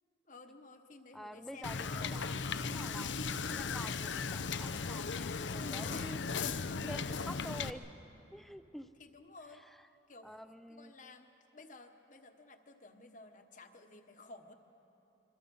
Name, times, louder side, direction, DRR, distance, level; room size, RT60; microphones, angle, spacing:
voice 1, 0.2-2.4 9.0-9.6 10.1-10.4 10.7-14.5, left 3 dB, 40° left, 6 dB, 1.2 m, -54 dB
voice 2, 1.1-3.1 3.5-6.3 6.6-7.9 8.3-8.9 9.5-9.7 10.2-11.1, equal, ahead, 11 dB, 0.5 m, -48 dB
Wind / Boat Water vehicle, 1.6-7.7, left 5 dB, 75° left, 0.7 m, -37 dB
25.5 x 24.0 x 5.5 m, 2.9 s
head